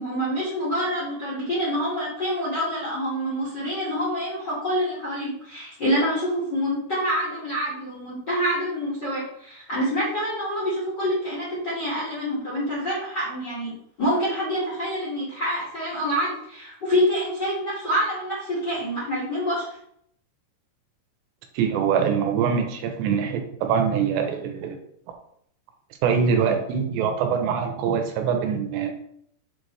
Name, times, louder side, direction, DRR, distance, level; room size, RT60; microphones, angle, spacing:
voice 1, 0.0-13.7 14.0-19.7, equal, 40° left, -7 dB, 1.6 m, -26 dB
voice 2, 21.5-24.8 26.0-28.9, right 7 dB, 80° right, 5 dB, 2.9 m, -23 dB
7.0 x 4.6 x 3.2 m, 0.70 s
omnidirectional pair, 5.1 m